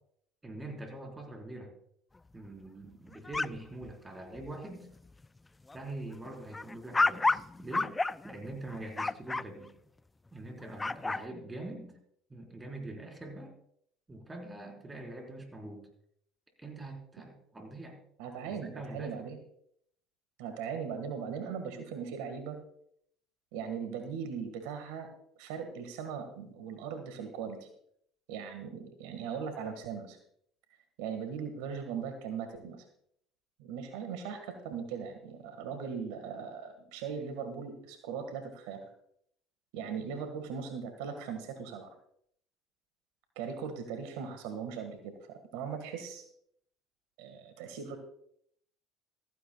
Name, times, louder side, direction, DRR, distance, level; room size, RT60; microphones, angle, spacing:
voice 1, 0.4-1.7 2.3-4.9 5.7-8.0 8.2-9.7 10.3-12.0 12.3-13.5 14.1-15.9 16.6-18.0 18.5-19.2, right 2 dB, 20° right, 2 dB, 4.3 m, -44 dB
sound 1, 3.1-3.9 4.3-4.6 5.0-5.3 5.7-9.4 10.6-11.2, left 3 dB, 15° left, 0.3 m, -31 dB
voice 2, 18.2-19.4 20.4-22.6 23.5-25.1 25.4-27.7 28.3-30.2 31.0-32.8 33.6-38.9 39.7-41.9 43.3-46.2 47.2-48.0, right 6 dB, 75° right, 6 dB, 1.7 m, -39 dB
15.5 x 14.5 x 2.3 m, 0.68 s
hypercardioid pair, 75°, 0 cm